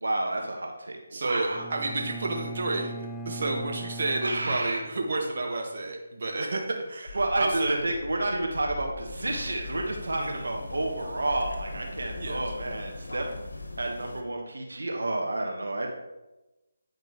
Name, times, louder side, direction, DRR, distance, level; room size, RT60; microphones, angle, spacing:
voice 1, 0.0-1.6 4.2-4.8 7.1-13.2 13.8-15.9, right 2 dB, 75° right, 1 dB, 1.2 m, -30 dB
voice 2, 1.1-2.9 3.2-6.6 6.9-7.8 10.2-10.5 12.2-12.4, right 2 dB, 55° right, 1 dB, 1.2 m, -30 dB
Bowed string instrument, 1.5-5.4, right 2 dB, ahead, 0.4 m, -40 dB
sound 1, 7.1-13.9, left 3 dB, 60° left, 0.6 m, -43 dB
sound 2, 9.1-14.2, left 2 dB, 90° left, 1.2 m, -42 dB
9.2 x 5.1 x 3.0 m, 1.0 s
figure-of-eight pair, 155°, 0 cm